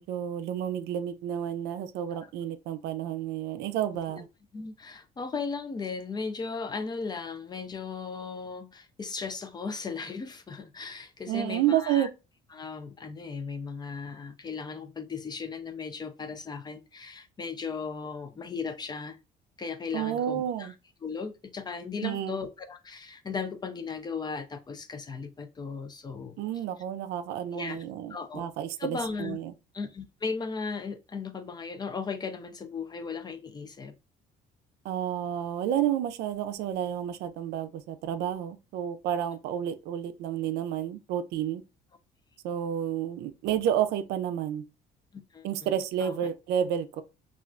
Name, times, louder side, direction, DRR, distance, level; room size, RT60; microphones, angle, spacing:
voice 1, 0.0-4.3 11.3-12.1 19.9-20.7 22.0-22.4 26.4-29.5 34.8-41.6 42.4-44.6 45.4-47.0, right 10 dB, 85° right, 0.4 m, -30 dB
voice 2, 4.5-12.1 12.5-19.2 19.6-20.7 21.0-26.4 27.5-27.8 28.1-28.4 28.8-29.4 29.7-33.9 45.3-45.7 46.0-46.2, left 5 dB, 25° left, 0.4 m, -36 dB
2.4 x 2.2 x 3.6 m
cardioid pair, 110°, 17 cm